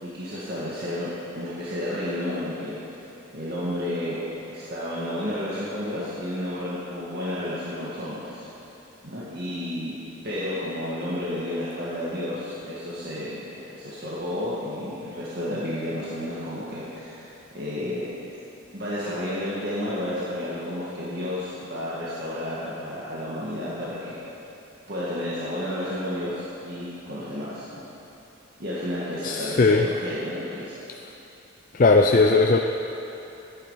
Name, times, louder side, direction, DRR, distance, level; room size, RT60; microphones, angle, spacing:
voice 1, 0.0-1.1 1.3-2.8 3.3-4.2 4.5-8.5 9.0-10.0 10.2-13.4 13.7-18.1 18.7-24.2 24.9-27.8 28.6-30.7, left 1 dB, 50° right, -9 dB, 2.0 m, -31 dB
voice 2, 29.2-29.9 31.7-32.6, left 3 dB, 40° left, 3 dB, 0.4 m, -18 dB
13.0 x 10.0 x 5.7 m, 3.0 s
head